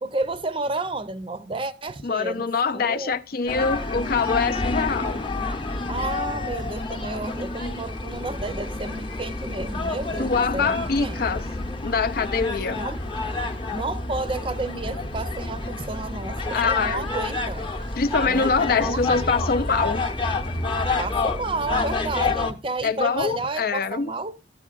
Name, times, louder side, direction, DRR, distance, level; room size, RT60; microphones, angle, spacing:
voice 1, 0.0-2.5 2.7-3.2 5.9-11.4 12.8-13.0 13.7-17.7 18.2-19.0 21.0-24.4, right 2 dB, 30° right, 0.6 m, -31 dB
voice 2, 2.0-5.2 10.2-11.4 11.8-12.8 16.5-17.1 18.0-20.0 22.8-24.1, left 5 dB, 50° left, 0.5 m, -24 dB
sound 1, 3.5-22.5, left 3 dB, 25° left, 0.9 m, -28 dB
12.0 x 8.9 x 2.4 m
head